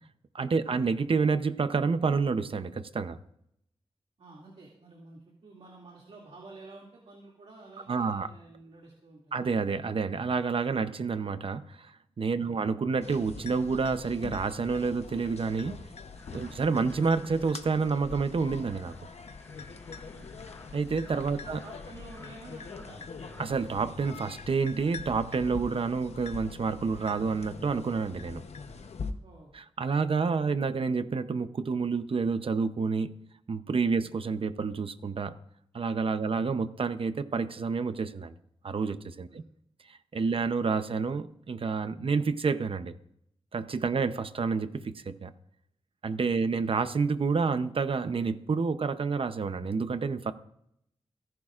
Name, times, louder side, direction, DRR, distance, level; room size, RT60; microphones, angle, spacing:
voice 1, 0.3-3.2 7.9-8.3 9.3-15.8 16.3-18.9 20.7-21.6 23.4-28.4 29.5-33.1 33.5-35.3 35.7-38.3 38.6-39.4 39.9-42.9 43.5-45.3 46.0-50.3, right 4 dB, 60° right, 11 dB, 0.8 m, -29 dB
voice 2, 4.2-9.4 12.3-12.7 16.4-16.6 20.1-20.3 21.2-23.2 29.2-29.5 33.9-34.1 36.2-36.4 39.3-39.4 40.2-40.4 46.3-46.6, right 2 dB, 75° right, -2 dB, 2.6 m, -51 dB
sound 1, 13.0-29.1, left 4 dB, 85° left, 0.9 m, -43 dB
sound 2, 16.1-23.7, left 1 dB, 20° left, 4.2 m, -56 dB
29.0 x 10.5 x 2.5 m, 0.74 s
wide cardioid pair, 100°, 11 cm